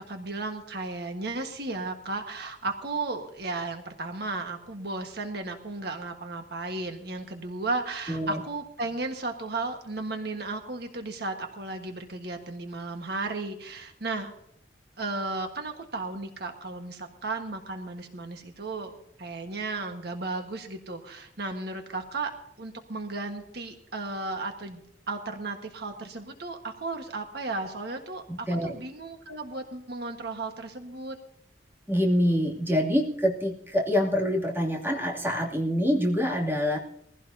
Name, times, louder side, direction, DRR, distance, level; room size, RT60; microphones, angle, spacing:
voice 1, 0.0-14.3 15.0-18.9 19.2-22.3 22.6-24.8 25.1-31.1, right 3 dB, 65° right, 4 dB, 1.5 m, -34 dB
voice 2, 8.1-8.4 28.3-28.7 31.9-36.8, equal, 15° right, -2 dB, 2.7 m, -26 dB
22.0 x 15.5 x 2.8 m, 0.74 s
head